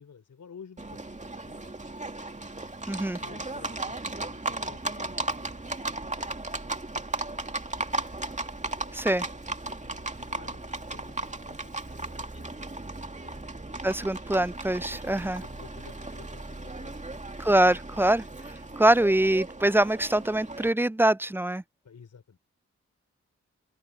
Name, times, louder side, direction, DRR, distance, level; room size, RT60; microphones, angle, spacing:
voice 1, 0.0-1.9 3.2-6.2 8.8-13.5 14.9-17.4 18.6-19.0 21.8-22.4, left 6 dB, 75° left, 4.7 m, -54 dB
Livestock farm animals working animals, 0.8-20.7, right 2 dB, 25° right, 2.3 m, -36 dB
voice 2, 2.9-3.2 8.9-9.3 13.8-15.4 17.4-18.2 18.8-21.6, right 1 dB, 10° right, 0.4 m, -24 dB
open air
cardioid pair, 45°, 30 cm